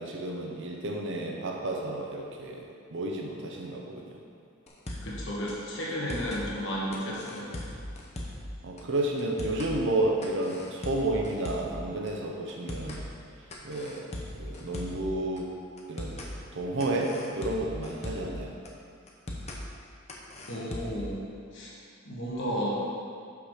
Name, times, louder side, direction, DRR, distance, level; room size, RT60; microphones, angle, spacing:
voice 1, 0.0-4.2 8.6-13.0 13.6-14.1 14.4-15.5 15.9-16.2 16.5-18.5, right 2 dB, 60° right, 0 dB, 0.7 m, -31 dB
sound 1, 4.7-5.2 5.5-5.6 5.9-6.4 6.9-8.5 8.8-8.9 9.2-9.7 10.2-11.8 12.1-12.2 12.5-13.0 13.5-15.1 15.4-15.5 15.8-16.3 16.8-18.4 18.7-18.8 19.1-19.6 20.1-21.1, left 1 dB, 30° left, 0.8 m, -39 dB
voice 2, 5.0-7.5 20.4-21.2 21.5-21.7 22.0-22.8, equal, 60° left, -5 dB, 1.7 m, -33 dB
5.9 x 5.8 x 4.9 m, 2.3 s
head